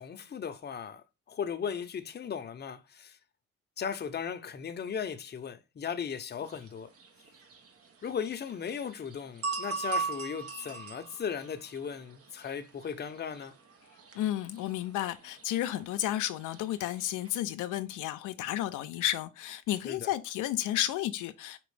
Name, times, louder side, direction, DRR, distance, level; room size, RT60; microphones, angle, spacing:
voice 1, 0.0-3.2 3.8-6.9 8.0-13.5 19.7-20.1, left 7 dB, 35° left, 0.6 m, -37 dB
sound 1, 6.4-17.4, right 4 dB, 50° right, 0.9 m, -41 dB
voice 2, 14.1-21.6, left 13 dB, 85° left, 0.5 m, -32 dB
5.2 x 3.0 x 3.3 m
cardioid pair, 90°, 30 cm